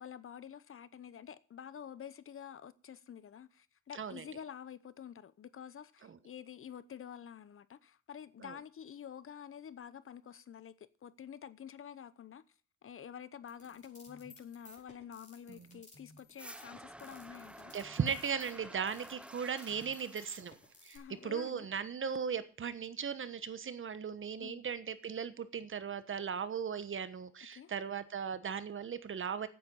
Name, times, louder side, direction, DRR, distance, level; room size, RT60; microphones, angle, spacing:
voice 1, 0.0-12.4 12.8-17.7 20.9-21.7 24.4-24.6 27.5-27.7, left 8 dB, 45° left, 0.8 m, -49 dB
sound 1, 13.5-21.0, left 2 dB, 25° left, 4.9 m, -57 dB
voice 2, 15.5-15.8 17.7-20.5 20.8-29.5, right 7 dB, 40° right, 1.3 m, -37 dB
sound 2, 16.4-21.4, right 1 dB, 5° right, 0.7 m, -52 dB
9.0 x 8.8 x 8.9 m
cardioid pair, 90°, 30 cm